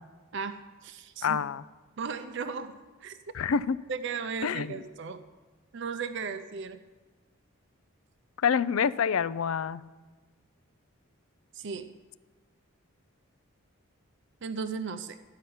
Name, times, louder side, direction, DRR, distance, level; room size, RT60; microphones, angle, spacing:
voice 1, 0.3-1.4 2.0-2.7 3.0-3.2 3.9-5.2 5.7-6.8 11.5-12.0 14.4-15.2, right 5 dB, 55° right, 9 dB, 0.5 m, -36 dB
voice 2, 1.2-1.6 3.3-3.8 4.4-4.7 8.4-9.8, left 6 dB, 75° left, 18 dB, 0.4 m, -27 dB
13.5 x 5.7 x 9.3 m, 1.3 s
head